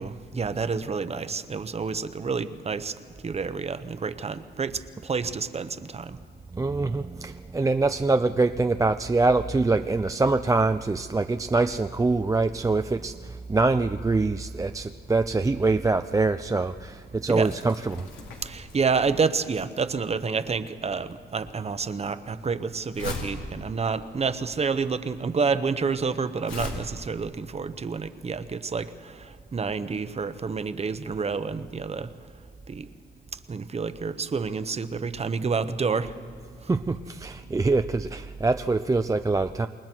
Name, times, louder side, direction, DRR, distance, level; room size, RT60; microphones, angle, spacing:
voice 1, 0.0-2.9 3.2-6.2 17.3-17.5 18.4-32.1 32.7-32.9 33.5-36.1, right 5 dB, 30° right, 11 dB, 1.0 m, -29 dB
voice 2, 6.5-18.1 36.7-39.7, right 3 dB, 15° right, 8 dB, 0.5 m, -24 dB
Crumpling crinkling, 17.4-26.7, left 3 dB, 75° left, 4.2 m, -40 dB
28.0 x 20.5 x 4.6 m, 2.2 s
cardioid pair, 90°, 20 cm